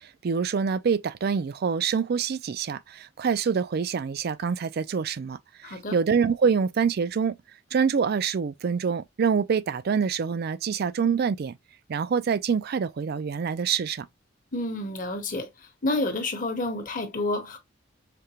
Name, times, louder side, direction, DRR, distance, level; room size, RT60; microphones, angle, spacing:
voice 1, 0.2-7.4 7.7-11.5 11.9-14.1, right 6 dB, 55° right, 0.4 m, -26 dB
voice 2, 5.6-6.0 14.5-15.5 15.8-17.6, left 2 dB, 45° left, 0.9 m, -29 dB
5.1 x 2.1 x 2.9 m
head